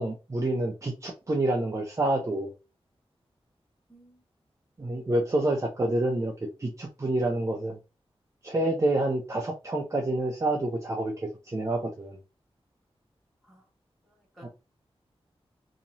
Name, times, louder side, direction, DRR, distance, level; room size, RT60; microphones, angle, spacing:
voice 1, 0.0-2.5 4.8-6.3 6.6-7.8 8.4-12.2 14.4-14.5, right 1 dB, 30° right, 0.5 m, -28 dB
voice 2, 3.9-4.2 13.4-13.7 14.0-14.5, equal, ahead, 1.6 m, -55 dB
2.9 x 2.8 x 2.6 m
wide cardioid pair, 115°, 10 cm